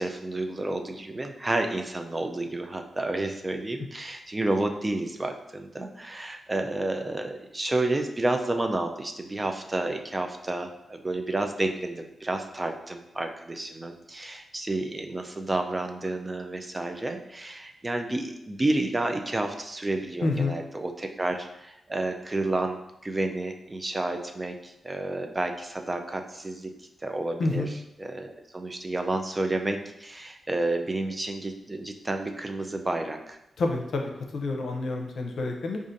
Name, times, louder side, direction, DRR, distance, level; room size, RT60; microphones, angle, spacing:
voice 1, 0.0-22.8 23.0-26.7 27.0-27.7 28.0-33.4, right 2 dB, 25° right, 5 dB, 0.4 m, -30 dB
voice 2, 20.2-20.6 27.4-27.7 33.6-35.8, left 3 dB, 75° left, 2 dB, 0.5 m, -28 dB
4.9 x 2.5 x 2.6 m, 0.86 s
cardioid pair, 85°, 0 cm